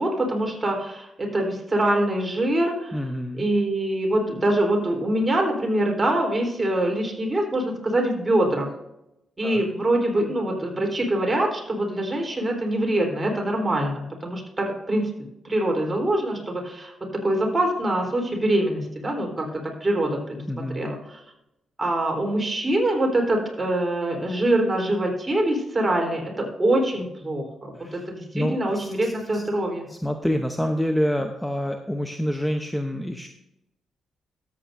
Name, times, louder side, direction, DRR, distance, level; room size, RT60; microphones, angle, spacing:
voice 1, 0.0-3.0 3.3-8.7 9.4-15.1 15.4-21.2 21.8-29.9, right 1 dB, 25° right, 0 dB, 3.8 m, -24 dB
voice 2, 2.9-3.4 9.4-9.6 20.5-20.9 27.8-27.9 28.3-29.4 29.9-33.3, equal, 5° left, 6 dB, 0.8 m, -27 dB
13.5 x 8.5 x 2.7 m, 0.86 s
supercardioid pair, 50°, 0 cm